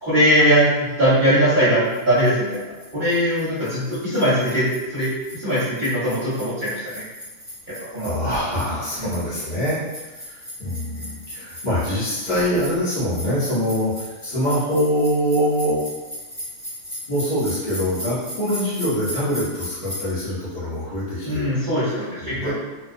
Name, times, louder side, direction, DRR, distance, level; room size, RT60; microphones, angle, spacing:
voice 1, 0.0-7.0 7.7-8.1 9.0-9.1 21.2-22.5, equal, 45° right, -13 dB, 0.8 m, -21 dB
sound 1, 1.9-20.1, equal, 5° left, 0.4 m, -37 dB
voice 2, 8.0-15.8 17.1-21.5 21.8-21.9 22.2-22.5, equal, 40° left, -11 dB, 0.8 m, -24 dB
2.3 x 2.2 x 2.5 m, 1.2 s
omnidirectional pair, 1.4 m